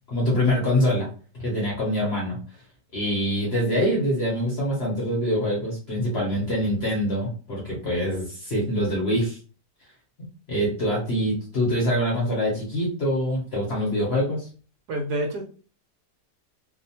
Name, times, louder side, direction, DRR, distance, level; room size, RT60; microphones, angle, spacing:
voice 1, 0.1-1.1 1.3-2.4 2.9-9.4 10.5-14.5, equal, 50° left, -3 dB, 0.9 m, -24 dB
voice 2, 14.9-15.4, right 1 dB, 75° right, 3 dB, 1.1 m, -27 dB
2.9 x 2.0 x 2.7 m, 0.38 s
omnidirectional pair, 1.9 m